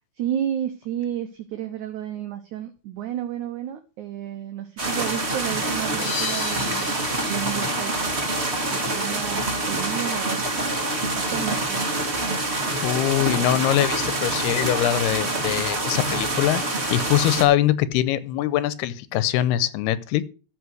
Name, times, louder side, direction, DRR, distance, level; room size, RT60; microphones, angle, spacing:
voice 1, 0.2-7.0 7.2-8.1 8.7-10.6 11.2-11.8, right 11 dB, 75° right, 7 dB, 1.8 m, -31 dB
sound 1, 4.8-17.4, right 2 dB, 40° right, 0.9 m, -26 dB
sound 2, 6.0-9.1, left 5 dB, 55° left, 2.2 m, -35 dB
voice 2, 12.8-20.2, left 13 dB, 85° left, 16 dB, 2.7 m, -23 dB
14.0 x 5.4 x 6.3 m, 0.34 s
omnidirectional pair, 4.6 m